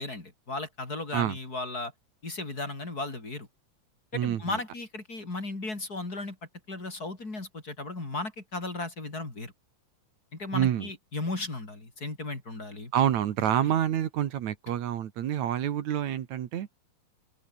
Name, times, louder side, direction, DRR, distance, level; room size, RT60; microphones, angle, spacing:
voice 1, 0.0-1.9 2.2-3.5 4.1-6.4 6.7-9.5 10.3-12.9, left 2 dB, 30° left, 4.7 m, -35 dB
voice 2, 4.1-4.6 10.5-10.9 12.9-16.7, right 10 dB, 70° right, 2.7 m, -27 dB
open air
omnidirectional pair, 3.5 m